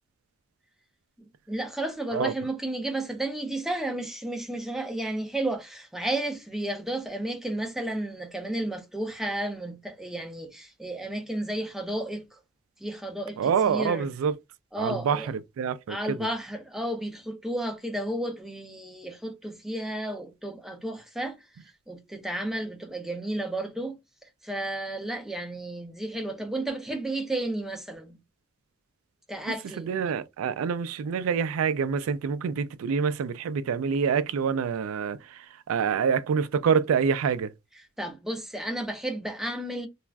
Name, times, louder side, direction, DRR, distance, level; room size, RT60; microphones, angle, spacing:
voice 1, 1.2-12.4 12.8-14.1 14.7-15.3 15.9-21.4 21.9-24.0 24.4-28.2 29.3-29.9 38.0-39.9, right 1 dB, ahead, 0.5 m, -32 dB
voice 2, 13.4-14.4 14.8-16.2 29.6-37.5, right 6 dB, 90° right, 0.3 m, -26 dB
2.4 x 2.2 x 3.3 m
head